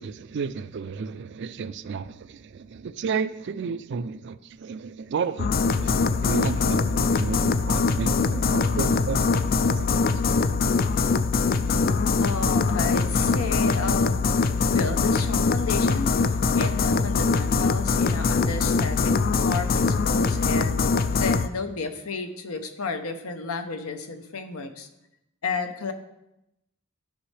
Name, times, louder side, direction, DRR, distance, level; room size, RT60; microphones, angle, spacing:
voice 1, 0.0-10.5, right 5 dB, 55° right, 14 dB, 0.3 m, -33 dB
sound 1, 5.4-21.5, left 4 dB, 40° left, 0.3 m, -23 dB
voice 2, 12.2-14.3 14.7-24.9 25.4-25.9, left 4 dB, 80° left, 7 dB, 0.9 m, -32 dB
12.5 x 5.4 x 3.3 m, 0.87 s
head